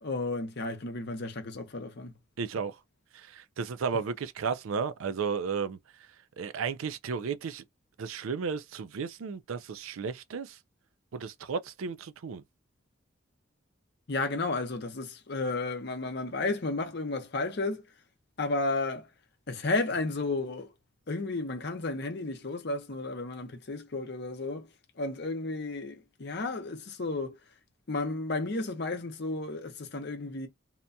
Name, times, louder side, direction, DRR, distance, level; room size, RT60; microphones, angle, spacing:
voice 1, 0.0-2.1 14.1-17.8 18.4-19.1 19.5-20.7 21.1-24.7 25.0-27.3 27.9-30.5, left 3 dB, 55° left, 0.7 m, -32 dB
voice 2, 2.4-2.8 3.1-5.8 6.4-7.6 8.0-10.6 11.1-12.4, right 5 dB, 80° right, 0.4 m, -33 dB
2.8 x 2.2 x 2.5 m
head